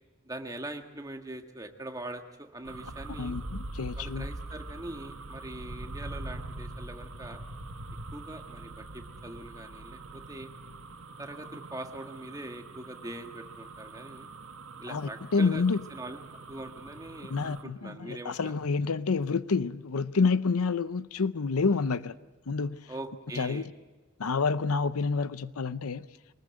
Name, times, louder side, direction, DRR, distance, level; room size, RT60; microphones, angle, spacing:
voice 1, 0.2-3.4 4.0-7.4 8.1-10.5 11.2-14.3 14.8-15.6 15.9-16.2 16.5-18.5 22.9-23.7, right 1 dB, 15° right, 1.7 m, -42 dB
sound 1, 2.6-17.6, right 2 dB, 75° right, 1.6 m, -43 dB
voice 2, 3.2-4.3 14.9-15.8 17.2-22.2 22.5-22.9 23.3-23.7 24.2-26.1, left 4 dB, 85° left, 0.7 m, -28 dB
24.0 x 19.5 x 7.8 m
head